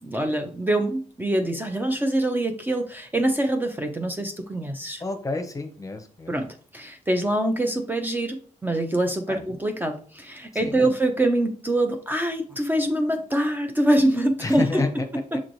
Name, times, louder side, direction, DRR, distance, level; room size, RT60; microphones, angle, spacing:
voice 1, 0.0-5.0 6.3-14.8 15.3-15.4, right 1 dB, 15° right, 5 dB, 0.5 m, -24 dB
voice 2, 5.0-6.4 9.3-9.4 10.6-10.9 14.4-15.1, left 3 dB, 25° left, 6 dB, 0.7 m, -30 dB
6.0 x 3.0 x 2.6 m, 0.42 s
cardioid pair, 100°, 14 cm